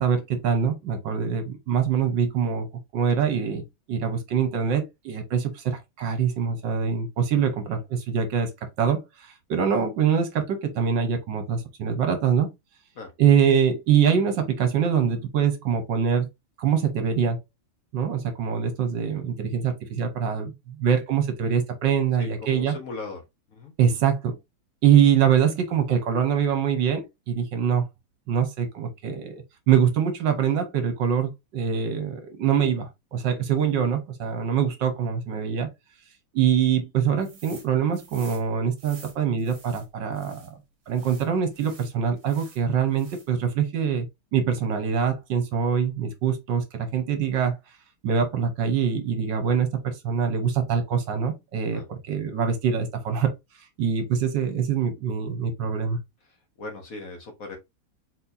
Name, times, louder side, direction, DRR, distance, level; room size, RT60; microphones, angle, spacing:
voice 1, 0.0-8.5 8.8-12.5 13.2-16.3 16.6-17.4 17.9-22.8 23.8-24.4 24.8-27.8 28.3-35.7 36.3-40.6 40.9-44.1 44.3-47.6 48.0-53.3 53.8-56.0, right 7 dB, 70° right, 1.5 m, -24 dB
voice 2, 22.2-23.2 23.5-23.7 51.7-51.9 56.6-57.6, left 3 dB, 50° left, 1.3 m, -38 dB
sound 1, 37.2-37.7 37.9-40.5 40.9-42.6 42.9-43.5, right 5 dB, 45° right, 1.5 m, -49 dB
4.3 x 4.2 x 2.6 m
omnidirectional pair, 2.2 m